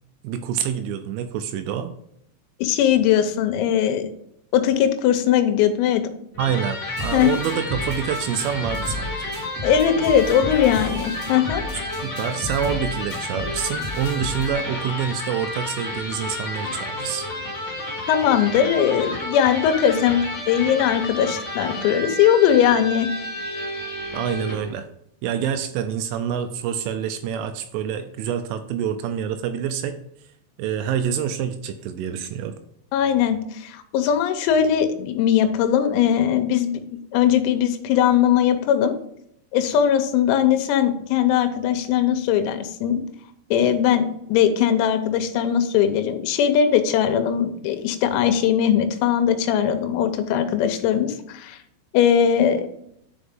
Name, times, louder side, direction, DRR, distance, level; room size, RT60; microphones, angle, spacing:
voice 1, 0.2-1.9 6.4-9.2 12.0-17.3 24.1-24.9 25.2-30.0 30.6-32.6, right 8 dB, 85° right, 9 dB, 2.9 m, -27 dB
voice 2, 2.6-4.1 4.5-6.0 7.1-7.3 9.6-11.6 18.1-23.1 32.9-38.9 39.5-43.0 43.5-51.6 51.9-52.7, left 9 dB, 90° left, 8 dB, 3.6 m, -20 dB
Electric guitar, 6.3-24.7, left 1 dB, 40° left, 1.7 m, -31 dB
sound 1, 7.0-14.5, left 2 dB, 15° left, 2.9 m, -34 dB
10.0 x 5.1 x 3.6 m, 0.73 s
omnidirectional pair, 6.0 m